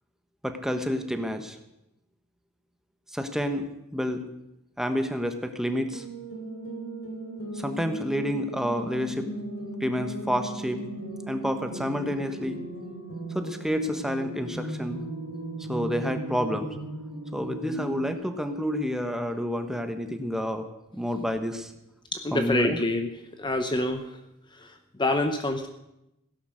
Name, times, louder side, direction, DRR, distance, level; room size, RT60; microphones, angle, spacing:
voice 1, 0.4-1.6 3.1-4.2 4.8-6.0 7.5-9.3 9.8-10.8 11.3-12.6 13.3-15.0 15.7-16.7 17.3-20.7 20.9-21.7 22.3-22.8, equal, ahead, 7 dB, 1.1 m, -29 dB
sound 1, 5.9-18.1, right 1 dB, 70° left, 3.4 m, -37 dB
voice 2, 22.1-23.1 23.4-24.2 24.5-25.7, left 2 dB, 20° left, 7 dB, 0.8 m, -27 dB
16.5 x 11.0 x 6.4 m, 0.87 s
head